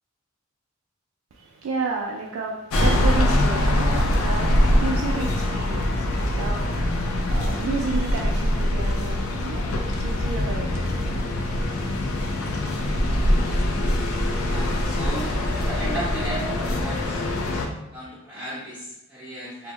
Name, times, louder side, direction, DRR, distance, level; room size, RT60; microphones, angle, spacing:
voice 1, 1.3-11.2, right 4 dB, 75° right, -1 dB, 0.3 m, -32 dB
sound 1, 2.7-17.7, left 1 dB, 80° left, 0.4 m, -23 dB
voice 2, 14.5-17.3 17.9-19.7, right 1 dB, 5° right, -8 dB, 0.4 m, -35 dB
2.1 x 2.0 x 3.6 m, 0.87 s
head